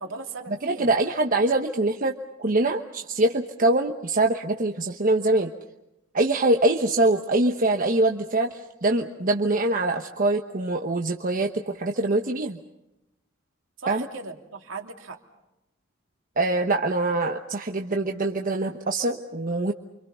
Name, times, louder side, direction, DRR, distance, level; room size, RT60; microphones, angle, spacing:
voice 1, 0.0-0.9 13.8-15.2, right 3 dB, 70° right, 2 dB, 3.1 m, -38 dB
voice 2, 0.6-5.5 6.1-12.6 13.9-14.0 16.4-19.7, right 2 dB, 45° right, 3 dB, 1.1 m, -24 dB
29.5 x 26.0 x 5.6 m, 0.92 s
head